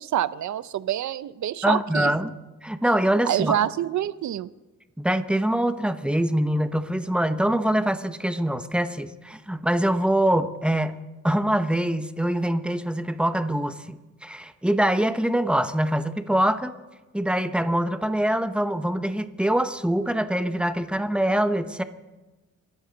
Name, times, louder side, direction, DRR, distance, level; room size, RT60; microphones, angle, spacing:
voice 1, 0.0-2.1 3.2-4.5, right 11 dB, 70° right, 16 dB, 0.6 m, -26 dB
voice 2, 1.6-2.3 2.6-3.6 5.0-16.8 17.1-21.8, right 1 dB, 5° right, 10 dB, 0.8 m, -24 dB
28.0 x 13.0 x 4.0 m, 1.2 s
cardioid pair, 115°, 30 cm